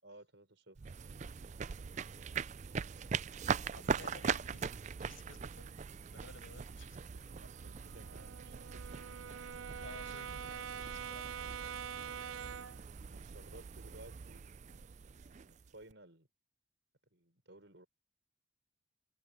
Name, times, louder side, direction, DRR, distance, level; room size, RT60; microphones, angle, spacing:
voice 1, 0.0-0.9 3.7-4.2 7.4-9.0 13.0-16.3 17.1-17.9, right 1 dB, 65° right, 5.2 m, -58 dB
sound 1, 0.8-15.9, right 6 dB, 35° right, 0.4 m, -41 dB
voice 2, 3.7-5.8 6.1-7.3 9.8-12.6, left 3 dB, 80° left, 6.8 m, -56 dB
Brass instrument, 7.3-12.8, right 7 dB, 85° right, 0.6 m, -45 dB
head